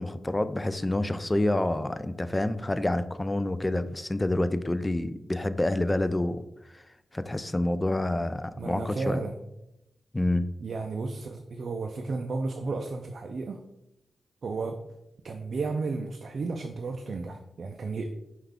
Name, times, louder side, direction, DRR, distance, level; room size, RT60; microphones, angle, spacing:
voice 1, 0.0-6.4 6.7-6.8 7.1-9.2 10.1-10.5, left 1 dB, 20° left, 12 dB, 0.3 m, -28 dB
voice 2, 8.6-9.4 10.6-13.6 14.4-14.8 15.2-18.1, right 3 dB, 65° right, 4 dB, 0.4 m, -33 dB
5.5 x 2.4 x 3.5 m, 0.87 s
cardioid pair, 50°, 0 cm